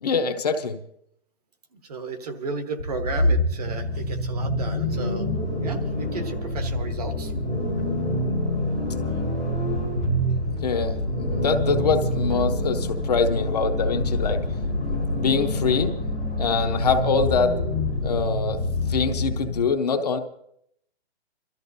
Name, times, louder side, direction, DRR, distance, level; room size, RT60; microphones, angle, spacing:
voice 1, 0.0-0.8 10.6-14.4 14.9-15.9 16.4-17.6 18.0-18.6 18.9-20.2, left 5 dB, 40° left, 5 dB, 0.9 m, -24 dB
voice 2, 1.8-5.3 5.6-7.3, right 4 dB, 35° right, 7 dB, 1.1 m, -34 dB
sound 1, 2.8-19.7, left 1 dB, 5° right, 0.6 m, -26 dB
26.5 x 13.5 x 2.7 m, 0.72 s
hypercardioid pair, 175°, 33 cm